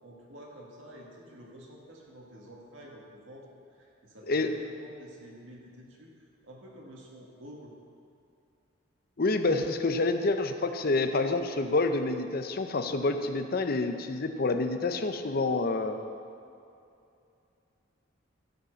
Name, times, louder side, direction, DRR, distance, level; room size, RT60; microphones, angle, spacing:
voice 1, 0.0-7.7, equal, 90° right, -2 dB, 1.8 m, -50 dB
voice 2, 9.2-16.0, left 3 dB, 50° left, 7 dB, 0.7 m, -28 dB
14.0 x 5.2 x 6.3 m, 2.6 s
head